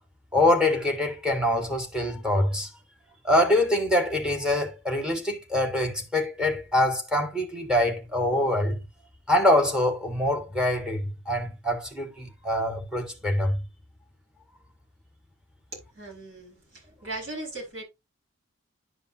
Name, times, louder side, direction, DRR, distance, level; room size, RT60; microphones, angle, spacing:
voice 1, 0.3-2.7 3.2-8.8 9.3-13.6, left 1 dB, 5° right, 1.5 m, -24 dB
voice 2, 16.0-16.6 17.0-17.8, right 2 dB, 65° right, 5.4 m, -37 dB
11.0 x 5.2 x 2.7 m
head